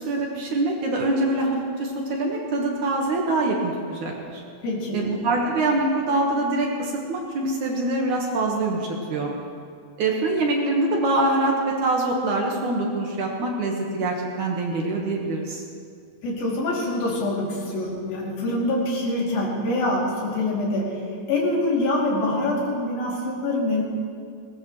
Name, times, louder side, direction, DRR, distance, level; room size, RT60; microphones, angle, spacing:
voice 1, 0.0-4.4 4.9-9.3 10.0-15.6, right 2 dB, 60° right, -1 dB, 2.5 m, -24 dB
voice 2, 4.6-5.1 16.2-23.8, left 1 dB, 70° left, -4 dB, 4.6 m, -25 dB
20.5 x 19.0 x 3.2 m, 2.2 s
omnidirectional pair, 4.4 m